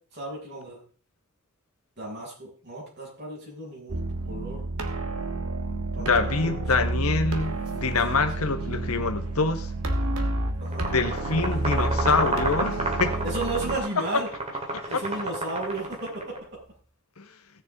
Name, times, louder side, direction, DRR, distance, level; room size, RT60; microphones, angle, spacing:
voice 1, 0.1-0.8 2.0-4.0 4.3-4.6 5.9-6.6 10.6-10.9 13.2-14.3 14.9-16.3, right 2 dB, 50° right, -4 dB, 6.5 m, -34 dB
sound 1, 3.9-13.8, right 2 dB, 85° right, 1.5 m, -30 dB
voice 2, 6.0-9.7 10.9-13.1 14.7-15.0 17.2-17.3, left 4 dB, 90° left, 7 dB, 1.4 m, -25 dB
sound 2, 10.6-16.4, right 2 dB, 30° right, 2.4 m, -31 dB
17.0 x 6.9 x 3.7 m, 0.42 s
head